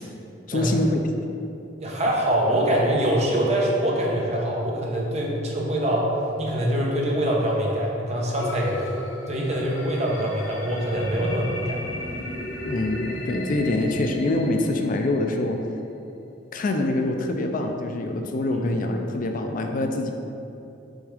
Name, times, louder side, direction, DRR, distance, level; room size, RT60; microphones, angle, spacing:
voice 1, 0.5-1.0 12.6-15.6 16.5-20.1, left 2 dB, 50° left, 4 dB, 0.4 m, -25 dB
voice 2, 1.8-6.1 6.4-8.9 9.3-11.8 18.6-18.8, right 1 dB, 40° right, -2 dB, 1.0 m, -24 dB
sound 1, 8.4-15.4, left 1 dB, 85° left, 0.8 m, -35 dB
6.3 x 3.5 x 5.0 m, 2.8 s
head